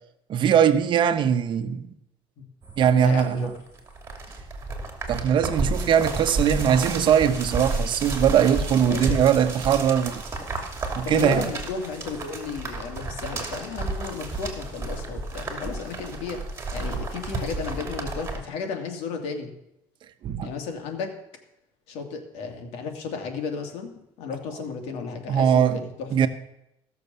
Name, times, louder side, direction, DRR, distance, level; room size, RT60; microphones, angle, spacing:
voice 1, 0.3-1.9 2.8-3.5 5.1-10.2 10.9-11.4 20.2-20.5 25.3-25.8 26.1-26.3, right 8 dB, 50° right, 1.0 m, -21 dB
sound 1, 2.6-18.4, right 3 dB, 25° right, 2.7 m, -32 dB
voice 2, 2.9-3.5 8.8-9.2 11.0-19.5 20.4-21.2 21.9-23.9 24.2-26.1, left 5 dB, 80° left, 2.4 m, -33 dB
15.5 x 6.6 x 6.9 m
cardioid pair, 115°, 10 cm